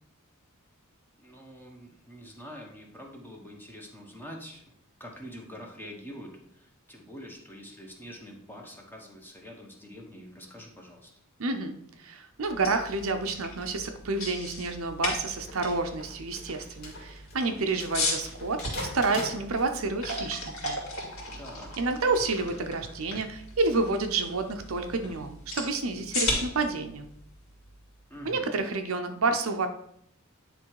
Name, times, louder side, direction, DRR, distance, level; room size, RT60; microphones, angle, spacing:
voice 1, 1.2-4.7 5.0-11.1 21.4-21.8 28.1-28.5, equal, 10° left, 0 dB, 1.1 m, -45 dB
voice 2, 11.4-20.8 21.8-27.1 28.2-29.7, right 3 dB, 70° right, 6 dB, 0.7 m, -29 dB
sound 1, 12.4-28.4, left 2 dB, 75° left, 2.4 m, -37 dB
sound 2, 15.4-19.9, left 2 dB, 50° left, 2.1 m, -42 dB
9.5 x 3.4 x 4.7 m, 0.71 s
head